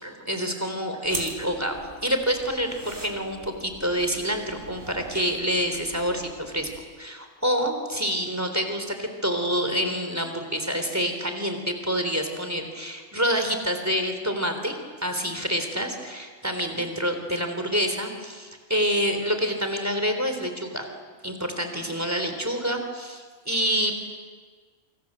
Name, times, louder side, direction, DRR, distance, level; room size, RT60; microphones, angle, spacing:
voice 1, 0.0-6.7 7.0-20.9 21.2-23.9, equal, 10° right, 6 dB, 3.8 m, -27 dB
sound 1, 1.0-6.8, right 2 dB, 45° right, 4.2 m, -42 dB
28.5 x 26.0 x 7.7 m, 1.5 s
omnidirectional pair, 1.3 m